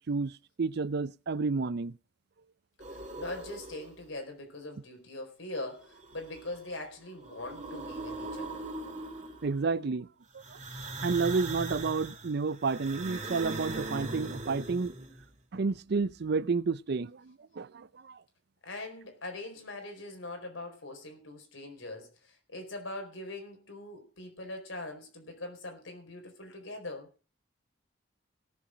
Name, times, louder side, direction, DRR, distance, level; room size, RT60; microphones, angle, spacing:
voice 1, 0.0-2.0 9.4-10.1 10.3-10.6 11.0-14.9 15.5-18.2, right 4 dB, 55° right, 0.5 m, -31 dB
sound 1, 2.8-4.1 5.8-6.7 7.1-9.6 10.4-15.3, right 2 dB, 40° right, 2.7 m, -40 dB
voice 2, 2.9-8.7 10.7-10.9 18.6-27.1, left 2 dB, 90° left, 4.5 m, -42 dB
17.5 x 7.2 x 5.1 m
head